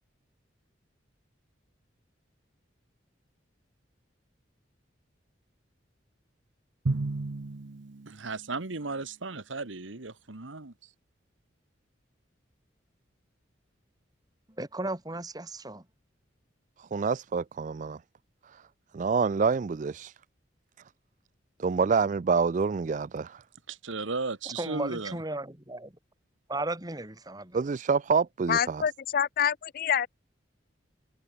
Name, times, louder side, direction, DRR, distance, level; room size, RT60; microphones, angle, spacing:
Drum, 6.9-8.6, right 3 dB, 70° right, 0.8 m, -33 dB
voice 1, 8.1-10.9 23.7-25.2, right 3 dB, 90° right, 1.6 m, -35 dB
voice 2, 14.6-15.8 24.6-25.9 26.5-27.6, right 2 dB, 20° right, 2.4 m, -35 dB
voice 3, 16.8-18.0 18.5-18.6 18.9-20.1 21.6-23.4 27.5-28.8, right 5 dB, 40° right, 0.4 m, -27 dB
voice 4, 28.5-30.1, left 8 dB, 50° left, 0.4 m, -27 dB
head